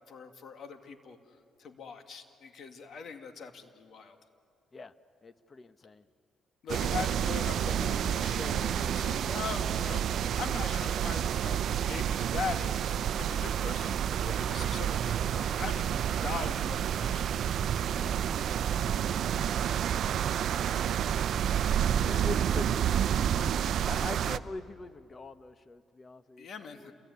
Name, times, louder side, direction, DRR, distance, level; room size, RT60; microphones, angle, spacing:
voice 1, 0.1-1.2 1.6-4.2 6.6-15.9 16.2-17.3 26.4-26.9, left 5 dB, 60° left, 6 dB, 2.3 m, -41 dB
voice 2, 5.2-6.1 6.9-7.1 18.0-18.2 18.8-19.6 20.4-23.5 23.8-26.9, left 3 dB, 35° left, 12 dB, 1.1 m, -44 dB
sound 1, 6.7-24.4, right 9 dB, 70° right, 0.6 m, -29 dB
28.5 x 21.5 x 9.7 m, 2.3 s
cardioid pair, 90°, 0 cm